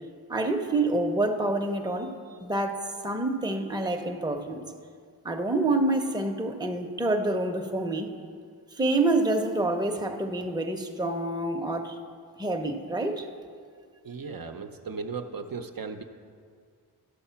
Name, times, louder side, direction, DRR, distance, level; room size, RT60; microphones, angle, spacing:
voice 1, 0.3-2.1 2.4-4.6 5.2-8.1 8.7-12.0 12.4-13.3, right 2 dB, 10° right, 3 dB, 0.7 m, -27 dB
voice 2, 14.0-16.0, right 4 dB, 60° right, 5 dB, 0.6 m, -36 dB
11.5 x 6.5 x 5.7 m, 2.1 s
wide cardioid pair, 90°, 39 cm